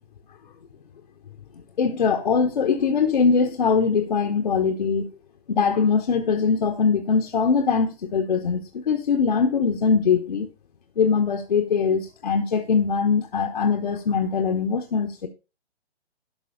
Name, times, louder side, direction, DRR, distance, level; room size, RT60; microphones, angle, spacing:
voice 1, 1.8-5.1 5.5-10.5 11.0-15.3, left 5 dB, 50° left, 1.2 m, -22 dB
12.0 x 6.0 x 4.0 m
figure-of-eight pair, 135°, 32 cm